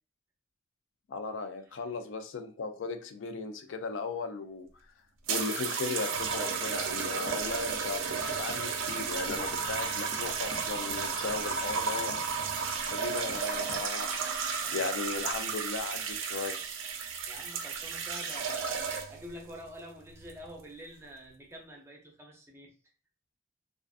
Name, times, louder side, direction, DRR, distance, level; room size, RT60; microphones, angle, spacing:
voice 1, 1.1-4.7 5.3-12.5 12.9-16.6, left 4 dB, 80° left, 0.4 m, -37 dB
sound 1, 5.3-19.3 20.2-20.5, right 5 dB, 90° right, 0.4 m, -33 dB
Run, 7.0-13.8, left 1 dB, 40° left, 0.6 m, -51 dB
voice 2, 14.6-15.3 17.3-22.8, equal, 15° right, 0.5 m, -48 dB
2.4 x 2.3 x 2.4 m
head